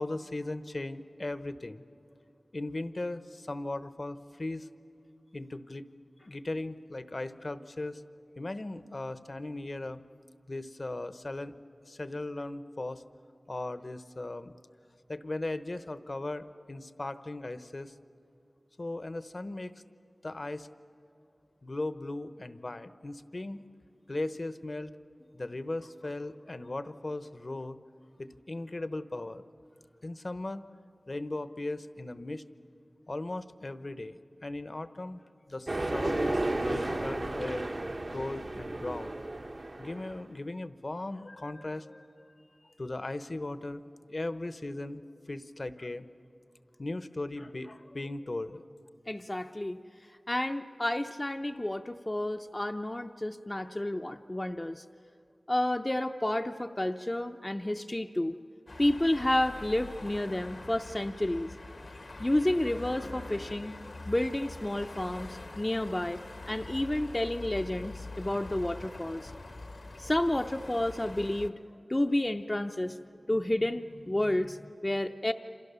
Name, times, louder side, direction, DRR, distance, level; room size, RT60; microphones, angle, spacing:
voice 1, 0.0-1.8 2.5-4.7 5.3-5.8 6.3-8.0 8.4-10.0 10.5-11.5 11.9-13.0 13.5-14.5 15.1-17.9 18.8-19.7 20.2-20.7 21.6-23.6 24.1-24.9 25.3-27.8 28.2-29.4 30.0-30.6 31.1-32.4 33.1-35.2 35.5-37.7 38.1-39.1 39.8-42.3 42.8-45.0 45.3-46.1 46.8-48.6, left 2 dB, 50° left, 12 dB, 0.9 m, -37 dB
sound 1, 35.7-40.2, right 2 dB, 55° right, 1.1 m, -33 dB
voice 2, 49.1-49.8 50.3-54.8 55.5-58.4 58.8-61.5 62.2-63.8 64.1-69.3 70.0-71.5 71.9-73.0 73.3-75.3, left 1 dB, 25° left, 5 dB, 0.6 m, -30 dB
sound 2, 58.7-71.5, left 2 dB, 70° left, 1.2 m, -44 dB
28.0 x 27.0 x 6.9 m, 2.5 s
wide cardioid pair, 60°, 0 cm